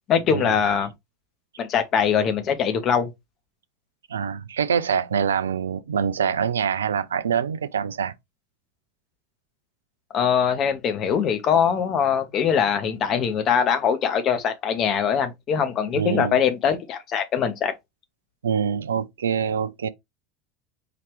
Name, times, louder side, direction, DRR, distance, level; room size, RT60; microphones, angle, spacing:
voice 1, 0.1-0.9 1.6-3.1 10.1-17.7, left 7 dB, 40° left, 1.0 m, -22 dB
voice 2, 4.1-8.1 16.0-16.4 18.4-19.9, right 7 dB, 75° right, 0.4 m, -25 dB
5.0 x 2.8 x 3.1 m
figure-of-eight pair, 75°, 0 cm